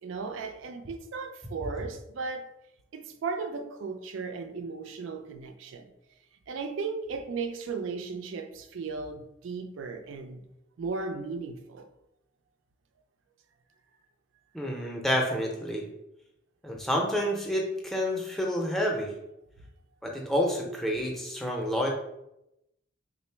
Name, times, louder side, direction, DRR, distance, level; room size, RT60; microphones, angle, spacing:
voice 1, 0.0-2.5 2.9-5.9 6.5-10.4 10.8-11.9, right 4 dB, 75° right, 0.4 m, -36 dB
voice 2, 14.5-15.8 16.6-19.1 20.0-21.9, equal, ahead, 0.5 m, -29 dB
3.6 x 2.0 x 4.3 m
head